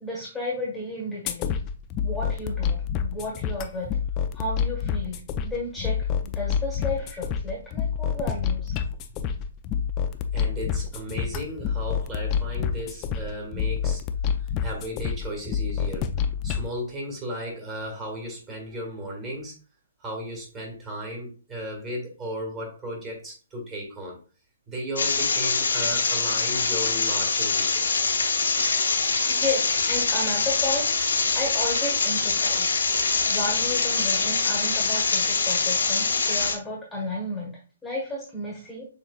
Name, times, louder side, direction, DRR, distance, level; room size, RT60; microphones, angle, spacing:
voice 1, 0.0-1.5 2.0-3.9 4.3-8.7 29.0-30.9 31.3-32.8 33.3-37.5 37.8-38.8, left 1 dB, 5° left, -4 dB, 1.3 m, -33 dB
sound 1, 1.3-16.7, left 7 dB, 25° left, 0.4 m, -28 dB
voice 2, 10.3-14.0 14.4-16.1 16.4-19.5 20.0-24.2 24.7-27.9, equal, 20° right, -1 dB, 1.8 m, -35 dB
sound 2, 25.0-36.5, left 4 dB, 75° left, 1.1 m, -24 dB
6.8 x 2.9 x 2.3 m, 0.36 s
hypercardioid pair, 135°, 0 cm